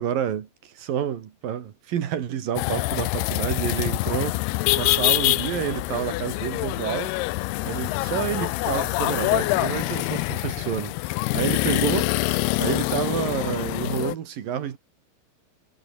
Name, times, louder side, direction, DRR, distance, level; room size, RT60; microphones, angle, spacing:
voice 1, 0.0-4.4 4.8-7.2 7.7-14.8, right 9 dB, 60° right, 3.3 m, -29 dB
sound 1, 2.6-14.2, left 21 dB, 80° left, 2.4 m, -25 dB
omnidirectional pair, 5.2 m